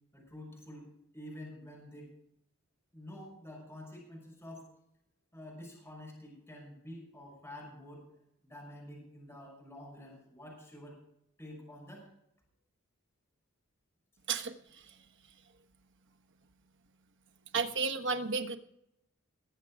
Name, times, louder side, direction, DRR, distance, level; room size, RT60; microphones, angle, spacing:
voice 1, 0.1-0.9 1.1-2.1 2.9-4.7 5.3-8.1 8.4-11.0 11.4-12.1, left 1 dB, 10° left, -2 dB, 5.9 m, -48 dB
voice 2, 17.5-18.6, right 4 dB, 60° right, 7 dB, 1.3 m, -32 dB
21.0 x 7.6 x 4.8 m, 0.78 s
head